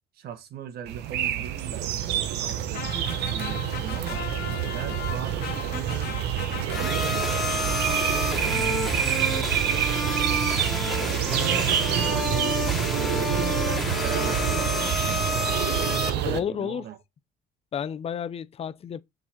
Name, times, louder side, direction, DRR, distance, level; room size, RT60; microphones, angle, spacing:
voice 1, 0.2-1.9 2.4-4.2 4.7-6.1 6.8-10.9 11.3-12.7 13.1-15.3 15.6-17.0, right 8 dB, 70° right, 1.4 m, -38 dB
sound 1, 0.9-16.4, right 10 dB, 85° right, 0.9 m, -27 dB
sound 2, 2.7-8.3, left 11 dB, 70° left, 0.9 m, -38 dB
sound 3, 6.7-16.1, left 1 dB, ahead, 2.4 m, -29 dB
voice 2, 16.2-16.9 17.7-19.0, left 8 dB, 35° left, 0.6 m, -31 dB
7.2 x 3.9 x 4.4 m
cardioid pair, 110°, 17 cm